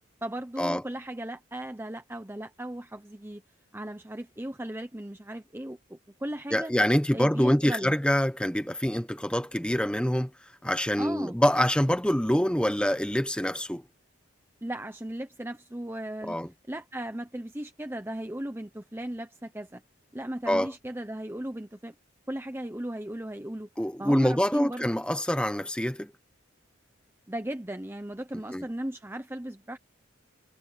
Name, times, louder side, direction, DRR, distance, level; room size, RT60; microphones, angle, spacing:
voice 1, 0.2-3.4 3.7-6.7 7.1-8.0 11.0-11.4 14.6-16.4 16.7-19.8 20.1-21.9 22.3-23.7 24.0-25.0 27.3-29.8, right 1 dB, 10° right, 0.8 m, -36 dB
voice 2, 6.5-10.3 10.6-13.8 16.3-16.5 20.5-20.7 23.8-26.1 28.5-28.6, equal, 5° left, 1.2 m, -25 dB
head